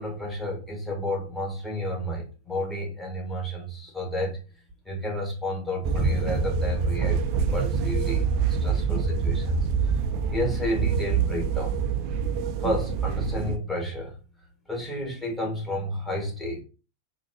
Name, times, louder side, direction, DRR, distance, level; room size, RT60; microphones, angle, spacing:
voice 1, 0.0-4.4 4.8-9.5 9.8-9.9 10.3-11.7 12.6-14.1 14.7-16.6, equal, 10° left, -2 dB, 1.6 m, -31 dB
sound 1, 5.8-13.6, right 5 dB, 45° right, 0.4 m, -25 dB
3.9 x 2.7 x 2.7 m, 0.33 s
figure-of-eight pair, 90°, 0 cm